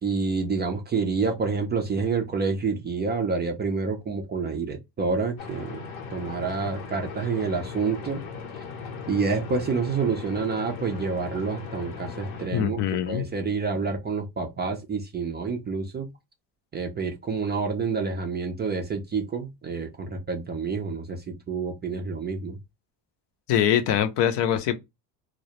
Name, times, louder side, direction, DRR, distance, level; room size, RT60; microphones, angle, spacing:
voice 1, 0.0-5.8 6.1-8.2 8.5-8.6 9.1-12.8 13.1-16.1 16.7-22.6, right 4 dB, 25° right, 0.4 m, -28 dB
sound 1, 5.4-12.5, left 5 dB, 85° left, 0.9 m, -38 dB
voice 2, 12.5-13.2 23.5-24.7, left 10 dB, 55° left, 0.6 m, -23 dB
2.3 x 2.0 x 2.8 m
supercardioid pair, 80°, 49 cm